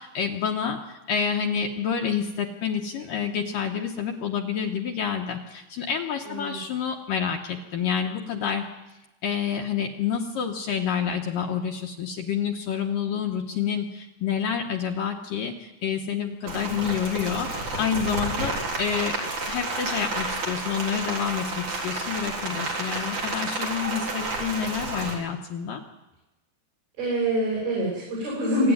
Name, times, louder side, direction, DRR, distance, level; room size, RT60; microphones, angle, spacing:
voice 1, 0.0-8.7 9.2-17.5 17.8-25.8, left 7 dB, 65° left, 2 dB, 2.3 m, -28 dB
voice 2, 6.3-6.6 27.0-28.7, right 1 dB, 80° right, -4 dB, 10.0 m, -25 dB
Rain, 16.5-25.1, right 2 dB, 45° right, 5.0 m, -30 dB
25.5 x 13.5 x 9.6 m, 1.0 s
omnidirectional pair, 5.2 m